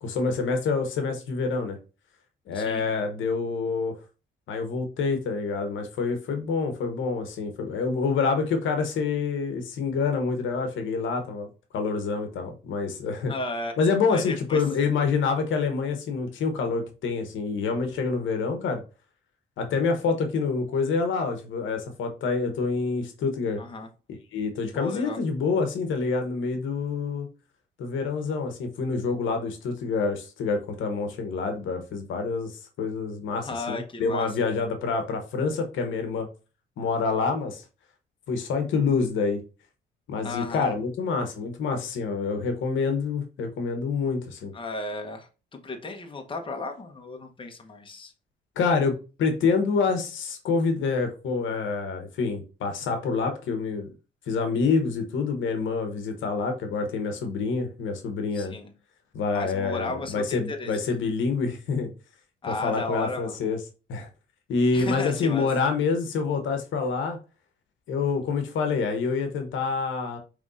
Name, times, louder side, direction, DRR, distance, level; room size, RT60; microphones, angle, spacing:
voice 1, 0.0-1.8 2.5-3.9 4.5-11.5 11.7-13.3 13.8-18.8 19.6-23.6 24.3-27.3 27.8-32.5 32.8-36.3 36.8-37.6 38.3-39.4 40.1-44.5 48.6-53.9 54.3-58.5 59.1-61.9 62.5-63.6 63.9-64.1 64.5-67.2 67.9-70.2, left 4 dB, 75° left, 0.9 m, -27 dB
voice 2, 13.3-13.8 14.1-14.6 23.6-23.9 24.7-25.2 33.4-34.5 40.2-40.7 44.5-48.1 58.3-58.7 59.3-60.7 62.4-63.4 64.7-65.5, left 2 dB, 25° left, 0.9 m, -34 dB
5.1 x 3.2 x 2.5 m
cardioid pair, 90°, 20 cm